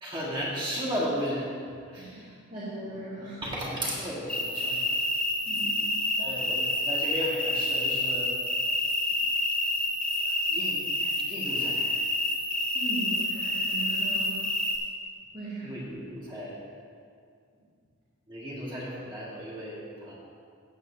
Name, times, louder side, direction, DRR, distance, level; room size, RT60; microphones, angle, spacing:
voice 1, 0.0-1.5 1.9-2.4 3.4-4.9 6.2-8.3 10.2-11.9 15.6-16.6 18.3-20.1, equal, 20° right, -6 dB, 1.8 m, -35 dB
voice 2, 2.5-3.4 5.5-5.9 12.7-14.4 15.3-15.8, right 2 dB, 35° right, -12 dB, 2.3 m, -38 dB
sound 1, 4.3-14.8, left 1 dB, 5° left, 0.7 m, -28 dB
14.5 x 8.0 x 2.7 m, 2.3 s
head